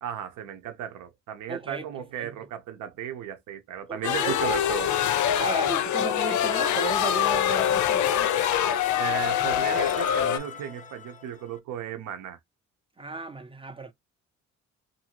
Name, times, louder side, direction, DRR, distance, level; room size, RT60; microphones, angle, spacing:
voice 1, 0.0-5.0 9.0-12.4, right 9 dB, 80° right, 0.8 m, -35 dB
voice 2, 1.5-2.3 3.9-4.6 5.0-5.1 5.4-8.3 13.0-13.9, right 3 dB, 20° right, 0.5 m, -35 dB
sound 1, 4.0-10.4, left 10 dB, 75° left, 0.5 m, -24 dB
sound 2, 6.1-11.6, left 7 dB, 25° left, 0.5 m, -38 dB
2.7 x 2.6 x 2.8 m
cardioid pair, 90°, 30 cm